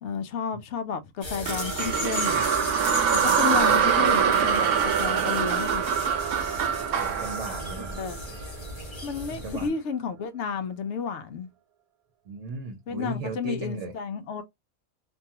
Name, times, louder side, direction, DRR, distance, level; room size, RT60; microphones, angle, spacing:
voice 1, 0.0-2.5 3.1-5.9 7.8-8.2 9.0-11.5 12.9-14.4, left 6 dB, 65° left, 0.8 m, -32 dB
sound 1, 1.2-9.7, left 2 dB, 30° left, 0.6 m, -36 dB
sound 2, 1.5-8.6, right 7 dB, 90° right, 1.0 m, -24 dB
voice 2, 3.2-3.6 7.0-8.0 9.3-9.7 12.3-13.9, right 3 dB, 60° right, 1.0 m, -37 dB
2.6 x 2.3 x 2.7 m
omnidirectional pair, 1.4 m